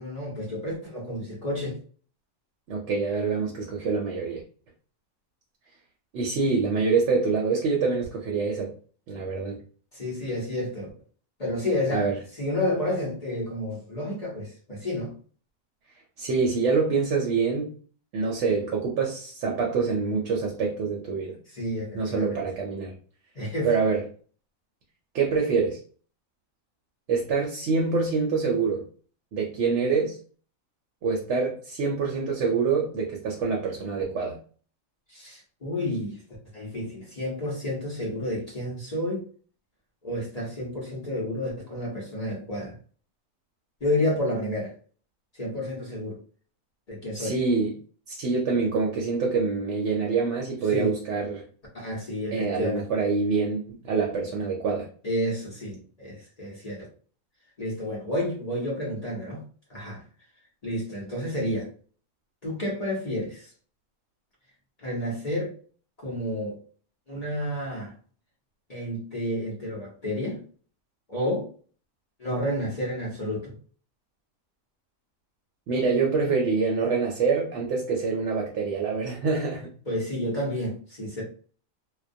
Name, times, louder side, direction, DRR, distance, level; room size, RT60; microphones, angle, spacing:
voice 1, 0.0-1.8 9.9-10.9 11.4-15.1 21.5-22.4 23.3-23.7 35.1-36.2 36.5-39.2 40.0-42.7 43.8-44.7 45.3-46.2 46.9-47.4 50.7-50.9 51.7-52.9 55.0-56.9 57.6-59.4 59.7-60.0 60.6-61.7 62.4-63.5 64.8-65.5 66.0-66.6 67.1-67.9 68.7-70.4 71.1-71.5 72.2-73.5 79.9-81.2, left 1 dB, 40° left, 0.6 m, -30 dB
voice 2, 2.7-4.4 6.1-8.7 9.1-9.6 11.9-12.1 16.2-17.7 18.1-21.4 22.0-22.9 23.6-24.0 25.1-25.8 27.1-28.9 29.3-30.2 31.0-34.4 47.1-47.7 48.1-51.4 52.3-54.9 75.7-79.7, right 4 dB, 65° right, 0.8 m, -25 dB
2.2 x 2.1 x 2.5 m
omnidirectional pair, 1.4 m